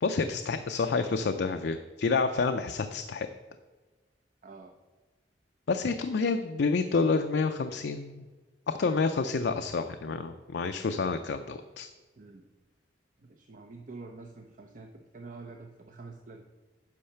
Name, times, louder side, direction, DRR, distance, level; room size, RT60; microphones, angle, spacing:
voice 1, 0.0-3.3 5.7-8.3 8.7-11.9, left 4 dB, 65° left, 7 dB, 0.4 m, -29 dB
voice 2, 4.4-4.8 12.2-12.5 13.2-16.4, right 3 dB, 45° right, 3 dB, 0.6 m, -47 dB
8.5 x 5.6 x 5.7 m, 1.3 s
head